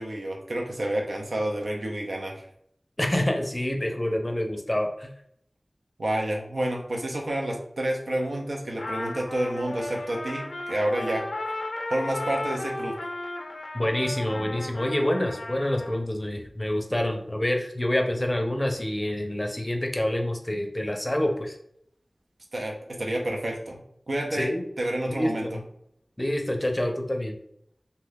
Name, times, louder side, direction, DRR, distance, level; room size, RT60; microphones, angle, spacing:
voice 1, 0.0-2.4 6.0-11.3 11.9-12.9 22.5-24.5 24.8-25.6, right 1 dB, 90° right, 0 dB, 0.6 m, -29 dB
voice 2, 3.0-5.1 13.7-21.5 24.3-24.6 25.1-25.6 26.2-27.4, left 1 dB, 20° left, 3 dB, 0.5 m, -27 dB
Trumpet, 8.8-16.0, left 2 dB, 90° left, 0.5 m, -35 dB
2.7 x 2.2 x 3.4 m, 0.70 s
wide cardioid pair, 55°, 0 cm